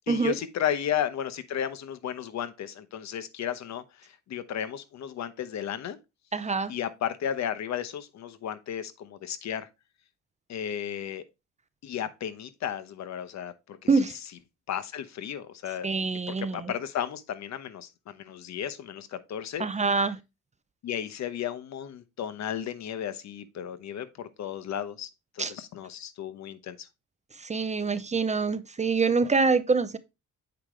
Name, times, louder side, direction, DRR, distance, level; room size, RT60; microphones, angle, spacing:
voice 1, 0.1-6.0 6.7-9.7 10.5-11.2 11.8-13.8 14.7-15.9 16.3-19.7 20.8-25.1 25.4-26.9, left 9 dB, 65° left, 1.0 m, -34 dB
voice 2, 6.3-6.7 13.9-14.1 15.8-16.7 19.6-20.2 25.4-25.5 27.4-30.0, right 4 dB, 25° right, 0.6 m, -25 dB
8.1 x 5.1 x 3.2 m
cardioid pair, 90°, 30 cm